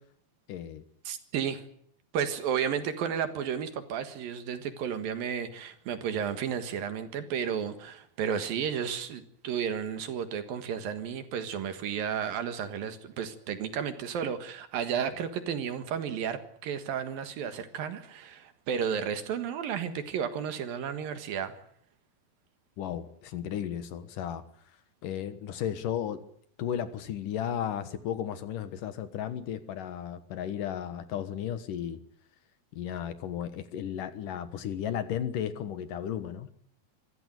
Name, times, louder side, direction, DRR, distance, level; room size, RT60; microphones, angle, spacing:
voice 1, 0.5-0.8 22.8-24.4 25.0-26.2 26.6-32.0 32.7-36.5, left 9 dB, 65° left, 12 dB, 2.7 m, -34 dB
voice 2, 1.0-1.6 2.1-21.5, right 8 dB, 70° right, 10 dB, 3.3 m, -33 dB
25.0 x 15.0 x 9.1 m, 0.65 s
omnidirectional pair, 4.4 m